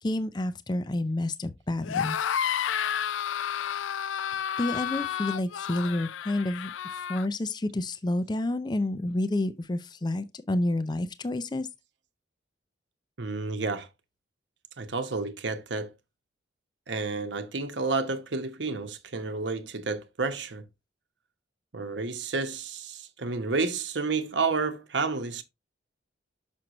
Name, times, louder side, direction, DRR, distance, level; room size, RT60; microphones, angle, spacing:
voice 1, 0.0-2.2 4.3-6.7 7.1-11.7, left 1 dB, 20° left, 0.4 m, -29 dB
sound 1, 1.8-7.3, left 9 dB, 85° left, 0.4 m, -31 dB
voice 2, 13.2-13.9 14.8-15.9 16.9-20.6 21.7-25.4, right 4 dB, 70° right, 1.0 m, -30 dB
6.2 x 6.0 x 3.0 m
head